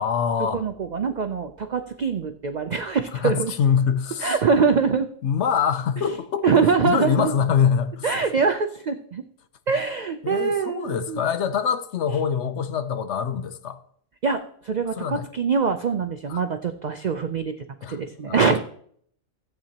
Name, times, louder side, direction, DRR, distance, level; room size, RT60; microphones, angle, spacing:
voice 1, 0.0-0.6 3.1-4.4 5.2-8.1 10.2-13.8 15.0-15.3 16.3-16.4 17.8-18.0 18.3-18.6, left 7 dB, 65° left, 0.9 m, -24 dB
voice 2, 0.5-3.5 4.2-5.1 6.0-6.1 6.4-7.3 8.0-9.2 9.7-11.2 14.2-17.5 17.9-18.6, right 5 dB, 80° right, 0.4 m, -23 dB
14.5 x 8.3 x 2.9 m
omnidirectional pair, 1.4 m